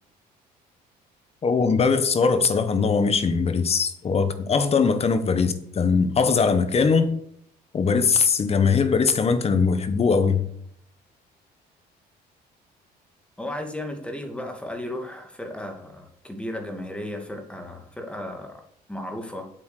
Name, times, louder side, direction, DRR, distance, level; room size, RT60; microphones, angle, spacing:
voice 1, 1.4-7.1 7.7-10.4, left 5 dB, 35° left, 1.5 m, -21 dB
voice 2, 13.4-18.6 18.9-19.5, left 1 dB, 5° left, 2.4 m, -34 dB
8.5 x 8.0 x 6.8 m
cardioid pair, 110°, 17 cm